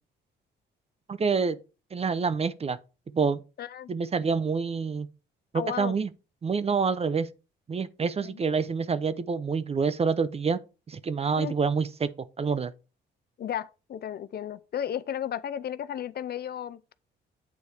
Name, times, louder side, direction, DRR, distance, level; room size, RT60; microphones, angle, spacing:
voice 1, 1.1-1.6 1.9-2.8 3.1-3.4 3.9-5.1 5.5-6.1 6.4-7.3 7.7-10.6 10.9-12.1 12.4-12.7, right 5 dB, 30° right, 0.6 m, -27 dB
voice 2, 3.6-3.9 5.5-6.0 8.2-8.4 11.4-11.6 13.4-16.8, left 9 dB, 55° left, 0.5 m, -34 dB
8.4 x 4.2 x 4.9 m
cardioid pair, 90°, 20 cm